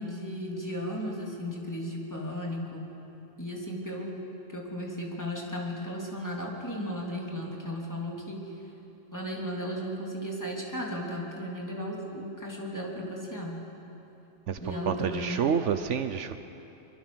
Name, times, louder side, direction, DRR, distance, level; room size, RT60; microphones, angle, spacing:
voice 1, 0.0-2.9 3.4-4.1 4.5-8.4 9.1-13.6 14.6-15.4, equal, 15° left, -2 dB, 3.2 m, -35 dB
voice 2, 14.9-16.4, right 7 dB, 70° right, 10 dB, 1.1 m, -28 dB
24.0 x 23.5 x 6.3 m, 3.0 s
omnidirectional pair, 1.3 m